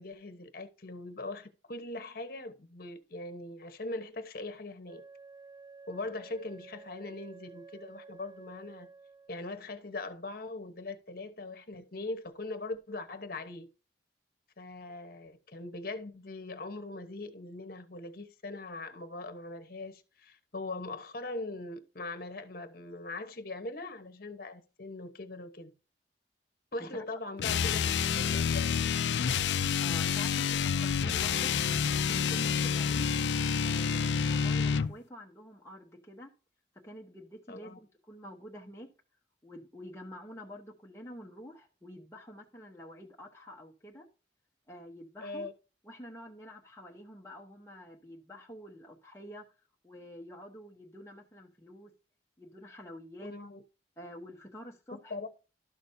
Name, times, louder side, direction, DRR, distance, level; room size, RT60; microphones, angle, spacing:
voice 1, 0.0-5.0 5.9-8.9 9.3-13.7 14.6-25.7 26.7-27.9 28.1-28.9 37.5-37.8 45.2-45.5 53.2-53.6 54.9-55.3, left 2 dB, 55° left, 1.1 m, -41 dB
Wind instrument woodwind instrument, 4.8-9.5, right 4 dB, 25° right, 0.7 m, -52 dB
sound 1, 27.4-34.9, left 7 dB, 80° left, 0.4 m, -28 dB
voice 2, 29.8-31.6 31.9-33.1 33.6-36.3 36.8-38.9 39.4-44.1 44.7-45.5 45.8-49.4 49.8-51.9 52.4-53.3 54.0-55.1, equal, 15° left, 1.0 m, -48 dB
12.5 x 6.1 x 2.7 m
head